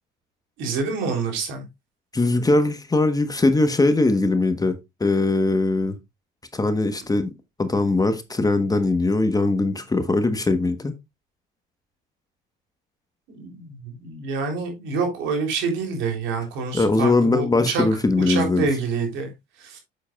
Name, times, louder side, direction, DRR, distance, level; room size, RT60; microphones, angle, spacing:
voice 1, 0.6-1.7 13.3-17.8 18.3-19.3 19.6-19.8, right 4 dB, 70° right, 3.5 m, -27 dB
voice 2, 2.1-5.9 6.5-7.3 7.6-10.9 16.7-18.7, left 2 dB, 20° left, 1.2 m, -21 dB
8.4 x 7.5 x 2.4 m
supercardioid pair, 75°, 21 cm